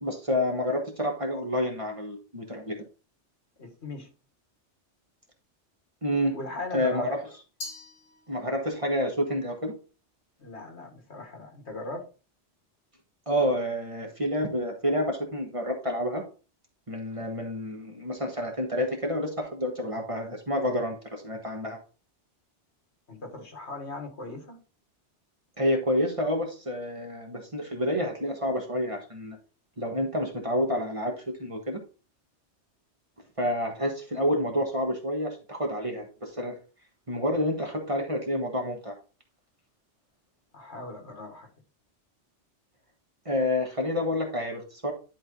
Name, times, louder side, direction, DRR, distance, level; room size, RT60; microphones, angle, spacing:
voice 1, 0.0-2.8 6.0-6.3 6.7-7.2 8.3-9.7 13.3-16.2 16.9-21.8 25.6-29.4 29.8-31.8 33.4-36.6 37.1-38.9 43.2-44.9, equal, 30° right, 2 dB, 1.5 m, -29 dB
voice 2, 3.6-4.1 6.3-7.1 10.4-12.1 23.1-24.6 40.5-41.5, left 2 dB, 70° left, 3 dB, 2.1 m, -39 dB
Glass, 7.6-8.8, left 2 dB, 85° left, 1.9 m, -43 dB
11.0 x 3.8 x 3.8 m, 0.34 s
omnidirectional pair, 1.2 m